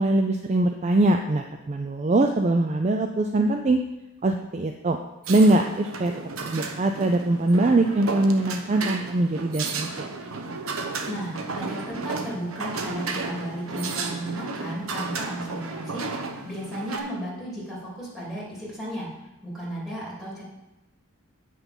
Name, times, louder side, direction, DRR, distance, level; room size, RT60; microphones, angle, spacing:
voice 1, 0.0-3.8 4.2-5.0 5.3-6.1 6.5-10.1, right 2 dB, 30° right, 5 dB, 0.4 m, -22 dB
sound 1, 5.2-17.0, right 4 dB, 80° right, 0.9 m, -33 dB
voice 2, 11.1-16.1 16.4-19.1 19.4-20.4, right 1 dB, ahead, -8 dB, 3.0 m, -34 dB
8.4 x 6.0 x 5.4 m, 0.99 s
head